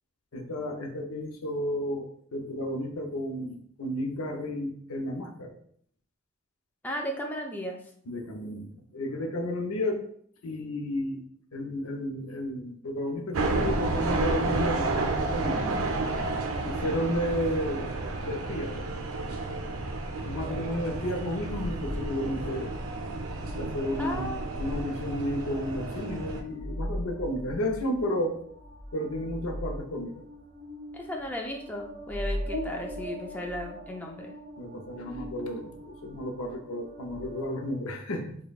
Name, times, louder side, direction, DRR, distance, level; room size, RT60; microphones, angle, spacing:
voice 1, 0.3-5.5 8.1-10.1 10.4-11.3 11.5-15.6 16.6-17.9 18.2-18.8 20.3-22.8 23.6-28.4 28.9-30.2 34.6-38.4, left 1 dB, 75° left, 4 dB, 0.6 m, -32 dB
voice 2, 6.8-7.8 15.5-16.1 24.0-24.5 30.9-34.3, left 1 dB, 10° left, 1 dB, 0.3 m, -35 dB
sound 1, 13.3-26.4, right 2 dB, 70° right, 0.5 m, -31 dB
sound 2, 20.3-37.7, equal, 35° right, 1.2 m, -40 dB
5.0 x 2.2 x 2.3 m, 0.63 s
head